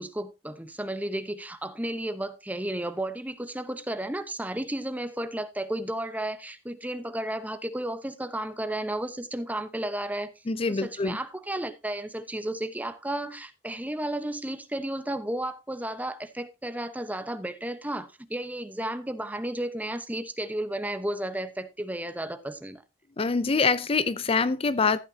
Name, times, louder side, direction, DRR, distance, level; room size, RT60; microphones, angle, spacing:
voice 1, 0.0-10.3 10.7-22.8, right 1 dB, 10° right, 1.0 m, -33 dB
voice 2, 10.5-11.2 23.2-25.0, left 4 dB, 35° left, 0.5 m, -25 dB
14.5 x 9.0 x 2.8 m
head